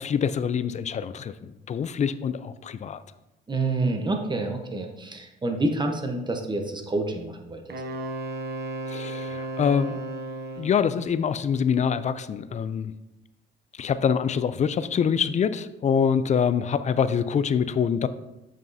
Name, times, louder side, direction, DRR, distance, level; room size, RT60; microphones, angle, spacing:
voice 1, 0.0-3.0 8.9-10.0 10.6-12.9 13.7-18.1, left 7 dB, 35° left, 14 dB, 0.4 m, -25 dB
voice 2, 3.5-7.6, right 2 dB, 20° right, 4 dB, 1.0 m, -28 dB
Wind instrument woodwind instrument, 7.7-10.9, right 2 dB, 55° right, 0.9 m, -34 dB
7.5 x 5.4 x 2.7 m, 0.97 s
cardioid pair, 90°, 20 cm